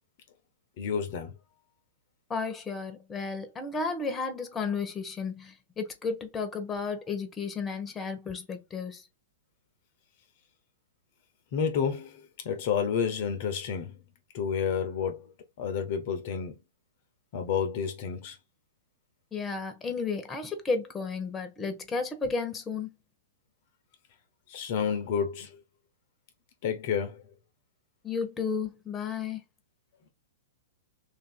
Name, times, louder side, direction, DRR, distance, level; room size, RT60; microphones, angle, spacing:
voice 1, 0.8-1.3 11.5-14.0 14.3-16.6 17.3-18.4 24.5-25.6 26.6-27.2, left 7 dB, 50° left, 0.8 m, -30 dB
voice 2, 2.3-9.1 19.3-22.9 28.0-29.4, left 4 dB, 15° left, 1.0 m, -33 dB
3.2 x 2.6 x 4.3 m
hypercardioid pair, 115°, 0 cm